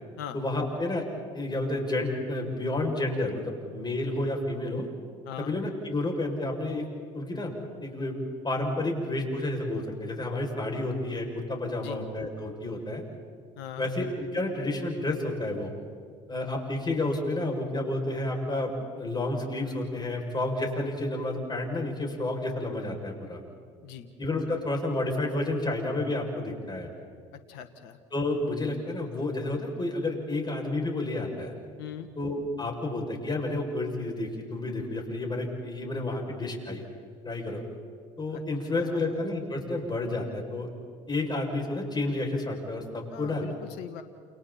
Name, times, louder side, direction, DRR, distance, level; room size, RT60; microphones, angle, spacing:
voice 1, 0.3-1.1 1.3-4.9 5.4-6.9 7.1-7.5 7.8-8.1 8.4-13.0 13.8-15.7 16.3-23.4 24.2-26.9 28.1-31.5 32.2-36.8 37.2-37.6 38.2-40.7 41.1-43.4, left 2 dB, 25° left, 1 dB, 7.1 m, -30 dB
voice 2, 5.2-5.6 11.8-12.0 13.6-13.9 23.8-24.1 27.3-28.0 31.8-32.1 38.3-38.4 38.7-39.3 43.1-44.0, left 10 dB, 75° left, 9 dB, 1.5 m, -41 dB
29.5 x 29.0 x 4.4 m, 2.1 s
hypercardioid pair, 65°, 16 cm